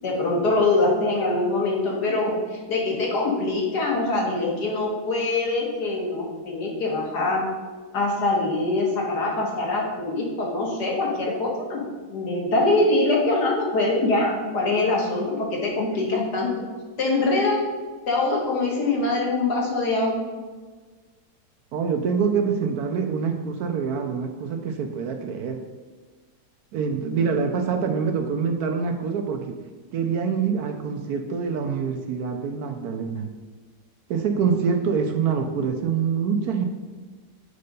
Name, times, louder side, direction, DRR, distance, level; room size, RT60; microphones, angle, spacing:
voice 1, 0.0-7.4 7.9-11.8 12.1-16.5 17.0-17.6 18.1-20.2, left 2 dB, 70° left, -2 dB, 2.0 m, -23 dB
voice 2, 21.7-25.6 26.7-29.6 29.9-33.3 34.1-36.7, right 6 dB, 70° right, 5 dB, 1.0 m, -25 dB
6.6 x 4.3 x 5.3 m, 1.4 s
omnidirectional pair, 1.9 m